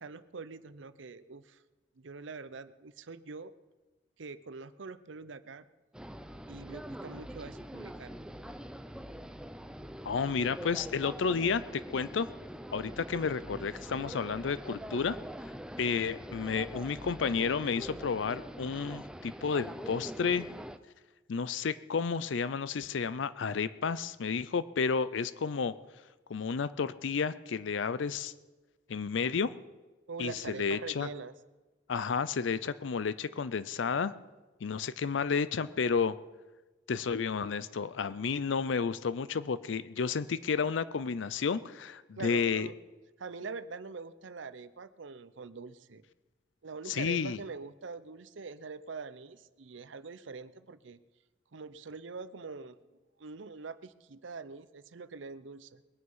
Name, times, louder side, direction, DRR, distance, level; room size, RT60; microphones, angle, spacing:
voice 1, 0.0-1.6 2.0-3.5 4.2-5.6 6.5-8.3 30.1-31.3 42.2-42.7 43.2-46.0 46.6-51.0 51.5-52.8 53.2-55.8, right 4 dB, 80° right, 14 dB, 0.7 m, -44 dB
sound 1, 5.9-20.8, equal, 5° right, 0.4 m, -44 dB
voice 2, 10.0-12.3 12.7-15.2 15.8-20.5 21.3-25.7 26.3-28.3 28.9-29.5 30.2-31.1 31.9-34.1 34.6-36.1 36.9-42.7 46.9-47.4, left 5 dB, 80° left, 16 dB, 0.5 m, -31 dB
21.5 x 9.5 x 5.5 m, 1.2 s
head